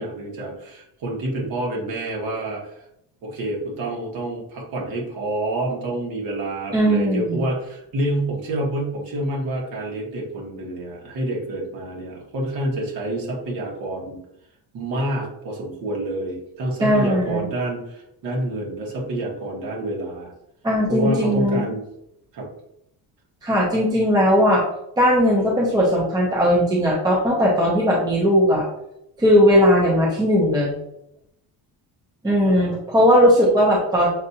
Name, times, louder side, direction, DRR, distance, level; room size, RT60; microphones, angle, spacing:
voice 1, 0.0-2.8 3.2-14.2 14.7-20.3 20.9-21.8 22.3-22.5 32.4-32.7, right 1 dB, 60° right, -2 dB, 1.5 m, -28 dB
voice 2, 6.7-7.4 16.8-17.5 20.6-21.7 23.4-24.6 25.0-28.6 29.2-30.7 32.2-34.1, equal, 10° right, -3 dB, 0.6 m, -18 dB
6.4 x 2.4 x 2.8 m, 0.80 s
cardioid pair, 180°, 39 cm